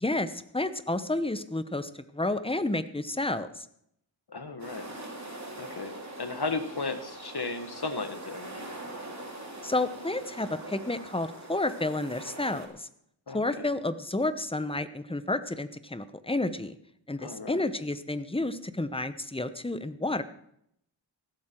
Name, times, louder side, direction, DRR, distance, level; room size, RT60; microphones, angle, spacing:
voice 1, 0.0-3.7 9.6-12.9 13.3-16.7 17.1-20.2, left 2 dB, 10° left, 12 dB, 0.9 m, -30 dB
voice 2, 4.3-4.9 5.6-8.7 13.3-13.6 17.2-17.6, left 3 dB, 55° left, 8 dB, 1.6 m, -35 dB
sound 1, 4.6-12.7, right 2 dB, 35° right, 2.8 m, -43 dB
15.0 x 12.5 x 4.5 m, 0.72 s
wide cardioid pair, 50°, 45 cm